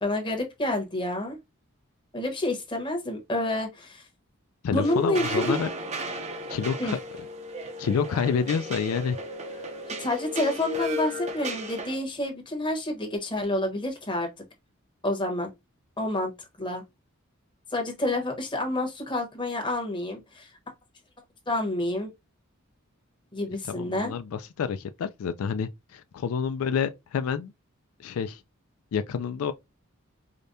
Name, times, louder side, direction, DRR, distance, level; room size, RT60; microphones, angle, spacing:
voice 1, 0.0-1.4 2.1-4.1 4.7-5.4 6.8-6.9 9.9-14.3 15.0-15.5 16.0-16.3 16.6-16.8 17.7-20.5 21.5-22.1 23.3-24.1, left 1 dB, 20° left, 1.1 m, -28 dB
voice 2, 4.6-5.7 6.5-7.0 7.8-9.2 9.5-9.6 23.6-27.5 28.0-28.4 28.9-29.5, left 6 dB, 80° left, 0.3 m, -28 dB
sound 1, 4.8-11.9, equal, 30° right, 0.6 m, -35 dB
4.9 x 2.2 x 2.6 m
head